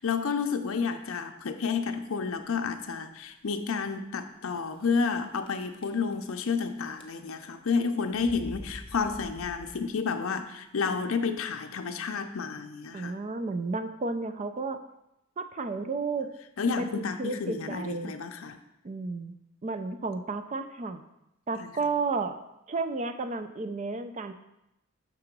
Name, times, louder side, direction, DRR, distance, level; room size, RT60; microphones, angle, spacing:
voice 1, 0.0-13.1 16.6-18.6 21.5-21.7, left 5 dB, 75° left, 7 dB, 0.5 m, -30 dB
sound 1, 2.4-2.8 3.4-3.5 3.8-3.9 4.8-5.2 5.5-6.6 6.9-7.5 8.1-10.1, left 1 dB, 25° left, 0.7 m, -46 dB
voice 2, 12.9-14.8 15.4-16.3 16.8-18.1 18.8-19.4 19.6-21.0 21.5-22.4 22.7-24.3, right 3 dB, 35° right, 9 dB, 0.4 m, -32 dB
6.0 x 3.8 x 5.9 m, 0.87 s
head